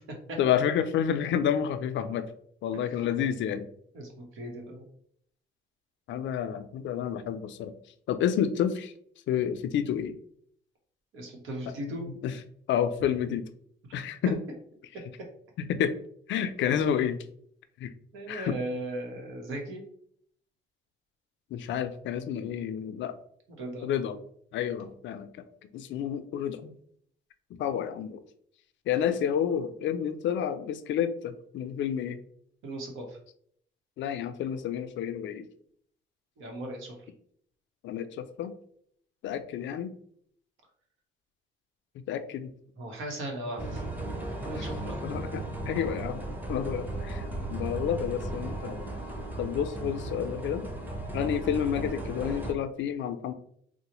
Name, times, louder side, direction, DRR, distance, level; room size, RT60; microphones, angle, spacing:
voice 1, 0.4-2.3 2.6-3.7 6.1-7.7 8.1-8.9 9.3-10.2 11.6-12.4 12.7-13.5 13.9-14.4 15.0-15.1 15.6-15.9 16.3-17.2 17.8-17.9 18.3-18.6 21.5-23.1 23.8-24.2 24.5-25.4 25.7-26.7 27.6-28.2 28.9-32.2 34.0-35.5 37.8-38.5 39.2-39.9 42.1-42.5 44.5-44.7 45.0-46.2 46.5-47.2 47.5-48.8 49.4-50.7 51.1-53.3, left 9 dB, 70° left, 11 dB, 0.4 m, -30 dB
voice 2, 3.9-4.8 11.1-12.1 18.1-19.8 23.6-23.9 32.6-33.2 36.4-37.0 42.8-43.8 44.4-45.1, right 1 dB, 80° right, 1 dB, 1.0 m, -37 dB
sound 1, 43.6-52.5, right 2 dB, 10° right, 0.7 m, -36 dB
3.8 x 2.1 x 2.9 m, 0.64 s
cardioid pair, 90°, 20 cm